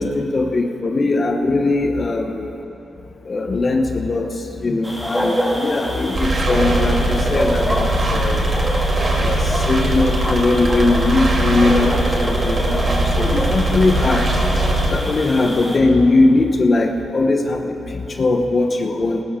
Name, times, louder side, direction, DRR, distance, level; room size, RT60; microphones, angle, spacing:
voice 1, 0.0-2.4 3.3-4.3 4.6-8.5 9.2-12.9 13.2-14.3 14.9-19.2, left 2 dB, 40° left, 4 dB, 1.1 m, -19 dB
sound 1, 4.8-15.8, equal, ahead, 2.7 m, -27 dB
sound 2, 6.1-14.9, right 1 dB, 45° right, 2.7 m, -20 dB
19.0 x 13.0 x 3.8 m, 2.9 s
supercardioid pair, 60°, 0 cm